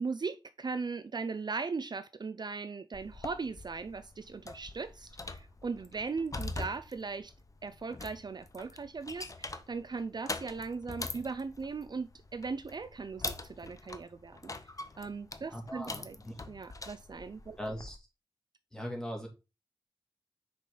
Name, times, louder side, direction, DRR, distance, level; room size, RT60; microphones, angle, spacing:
voice 1, 0.0-7.3 7.6-14.5 15.0-16.2 16.5-17.6, right 4 dB, 55° right, 0.4 m, -38 dB
sound 1, 2.9-18.0, left 3 dB, 40° left, 0.6 m, -44 dB
voice 2, 15.5-16.3 17.6-18.0 18.7-19.3, equal, 5° left, 2.4 m, -39 dB
6.1 x 4.2 x 3.8 m
wide cardioid pair, 75°, 9 cm